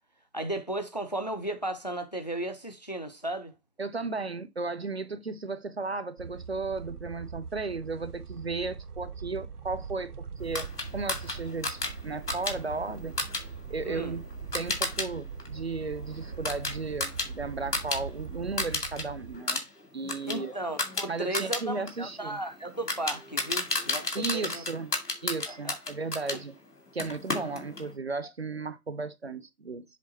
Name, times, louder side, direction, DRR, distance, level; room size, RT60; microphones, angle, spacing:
voice 1, 0.3-3.5 13.8-14.2 20.3-24.6 25.5-25.8 26.3-26.4, right 1 dB, 30° left, 0.5 m, -35 dB
voice 2, 3.8-13.1 13.7-14.2 14.5-19.6 19.9-20.5 21.1-22.4 24.1-24.9 25.2-26.5 26.9-29.8, right 3 dB, 45° right, 0.6 m, -35 dB
sound 1, 6.2-19.4, right 5 dB, 75° right, 0.9 m, -41 dB
sound 2, 10.5-15.1 15.4-18.0 18.3-19.0 19.3-26.4 27.0-27.9, left 2 dB, 80° left, 2.3 m, -33 dB
7.4 x 3.4 x 4.2 m
figure-of-eight pair, 150°, 46 cm